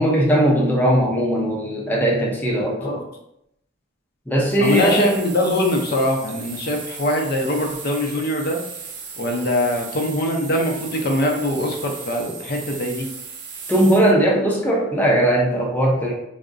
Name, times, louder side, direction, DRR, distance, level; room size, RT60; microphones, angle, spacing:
voice 1, 0.0-3.0 4.3-5.1 13.7-16.1, right 1 dB, 10° left, -3 dB, 0.6 m, -19 dB
sound 1, 4.5-14.1, right 5 dB, 70° right, 0.5 m, -36 dB
voice 2, 4.6-8.6 9.2-13.1, left 1 dB, 55° left, 2 dB, 0.5 m, -22 dB
3.6 x 2.0 x 2.4 m, 0.79 s
head